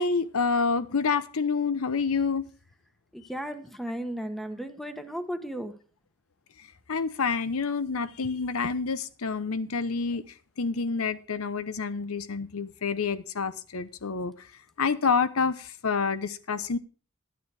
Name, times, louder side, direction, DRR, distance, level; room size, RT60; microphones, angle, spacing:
voice 1, 0.0-2.5 6.9-10.2 10.6-14.3 14.8-15.6 15.8-16.8, left 5 dB, 85° left, 0.8 m, -28 dB
voice 2, 3.1-5.7, equal, ahead, 1.0 m, -35 dB
11.5 x 9.3 x 4.7 m
head